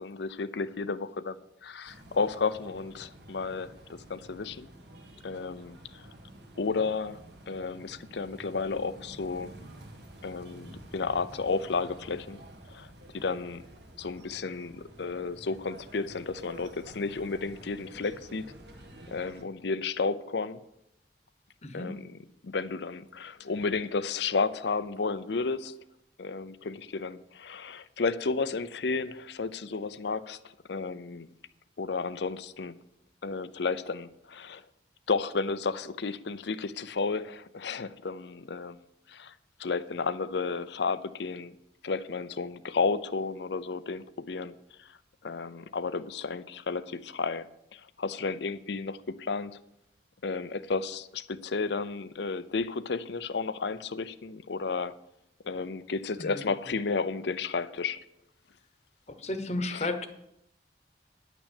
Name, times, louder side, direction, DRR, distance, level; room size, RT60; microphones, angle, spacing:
voice 1, 0.0-4.7 5.2-6.0 6.6-7.2 7.5-9.5 10.2-12.4 12.7-12.9 13.1-13.6 14.0-18.5 19.1-20.6 21.7-22.0 22.4-25.7 26.2-30.4 30.7-31.3 31.8-32.8 33.2-34.6 35.1-38.8 39.1-39.3 39.6-41.5 41.8-44.9 45.2-47.5 47.7-49.6 50.2-54.9 55.4-58.0 59.7-59.9, left 4 dB, 65° left, 15 dB, 0.6 m, -32 dB
sound 1, 1.9-19.4, right 1 dB, 65° right, 1.6 m, -50 dB
voice 2, 21.6-22.0 56.2-56.4 59.2-60.1, left 2 dB, 35° left, 9 dB, 1.0 m, -33 dB
10.5 x 6.0 x 8.3 m, 0.80 s
head